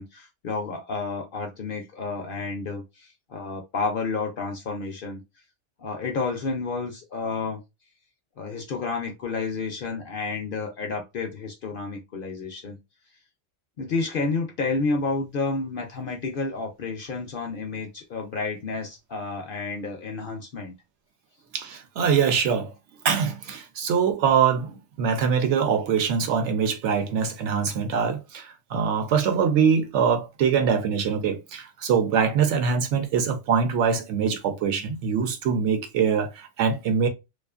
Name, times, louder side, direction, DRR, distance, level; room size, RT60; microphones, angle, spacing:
voice 1, 0.0-5.2 5.8-7.6 8.4-12.8 13.8-20.7, left 4 dB, 60° left, 0.6 m, -30 dB
voice 2, 21.5-22.7 23.0-37.1, right 6 dB, 70° right, 0.8 m, -23 dB
2.5 x 2.4 x 2.3 m
omnidirectional pair, 1.3 m